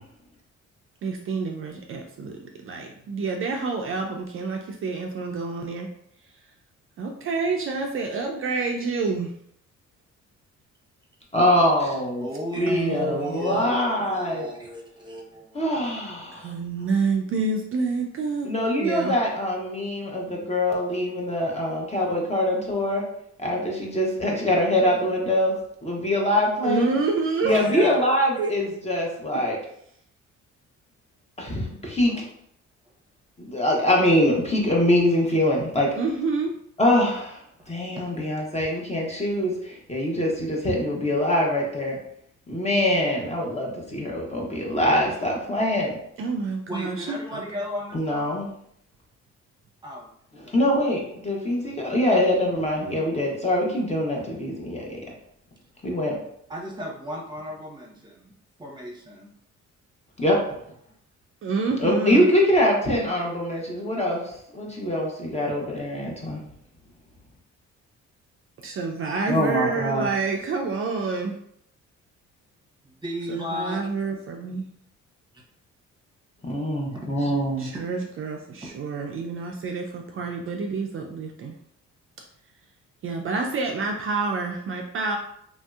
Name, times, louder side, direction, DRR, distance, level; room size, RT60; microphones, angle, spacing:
voice 1, 1.0-5.9 7.0-9.3 12.7-13.7 16.4-18.5 18.8-19.1 26.6-27.7 28.4-28.6 36.0-36.5 46.2-47.4 61.4-62.3 68.6-71.4 73.3-74.6 77.6-81.6 83.0-85.2, right 4 dB, 45° right, 2 dB, 0.4 m, -28 dB
voice 2, 11.3-12.3 12.6-14.5 15.5-16.5 18.4-23.1 23.4-26.9 27.4-29.6 31.4-32.2 33.4-36.0 36.8-37.4 37.7-42.0 42.5-46.0 47.9-48.5 50.3-55.0 55.8-56.2 60.2-60.5 61.8-64.2 64.5-66.4 69.3-70.1 76.4-77.7, left 1 dB, 20° left, -2 dB, 0.8 m, -24 dB
voice 3, 12.2-15.9 27.5-28.1 32.0-32.3 37.6-37.7 46.7-48.3 49.8-50.1 50.4-50.5 50.9-51.0 56.5-58.3 58.6-59.3 72.8-74.1 76.9-77.0 77.7-77.9 78.6-78.7, equal, 15° right, -2 dB, 0.8 m, -34 dB
3.1 x 2.6 x 2.3 m, 0.71 s
cardioid pair, 90°, 30 cm